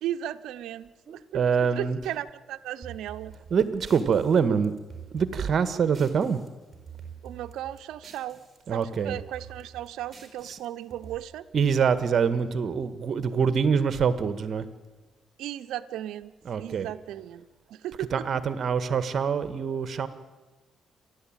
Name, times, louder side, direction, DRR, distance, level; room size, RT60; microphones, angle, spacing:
voice 1, 0.0-3.3 7.2-8.4 8.7-11.4 15.4-18.2, right 12 dB, 85° right, 9 dB, 0.9 m, -36 dB
voice 2, 1.1-2.2 3.5-4.7 5.1-6.4 8.7-9.2 10.4-10.6 11.5-14.7 16.4-16.9 18.0-20.1, right 6 dB, 55° right, 12 dB, 1.7 m, -25 dB
sound 1, 2.8-6.5 6.7-8.6 8.8-11.2, right 7 dB, 30° right, 5.7 m, -46 dB
28.5 x 12.0 x 9.0 m, 1.2 s
cardioid pair, 90°, 0 cm